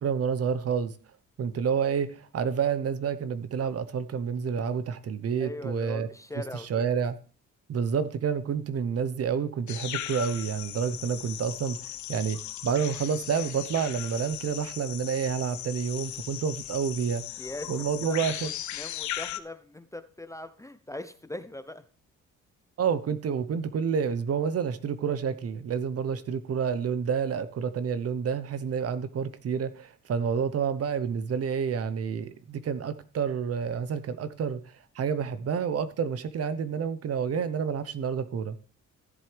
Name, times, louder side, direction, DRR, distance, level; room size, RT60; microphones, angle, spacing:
voice 1, 0.0-0.9 1.4-6.1 6.7-7.2 7.7-12.4 12.6-17.2 17.7-18.5 22.8-34.6 34.9-38.5, right 6 dB, 50° right, 13 dB, 0.9 m, -29 dB
voice 2, 5.4-6.7 17.4-17.7 18.0-21.8, left 1 dB, 10° left, 11 dB, 0.7 m, -40 dB
sound 1, 9.7-19.4, left 13 dB, 70° left, 0.7 m, -38 dB
14.0 x 7.7 x 3.4 m, 0.40 s
cardioid pair, 90°, 30 cm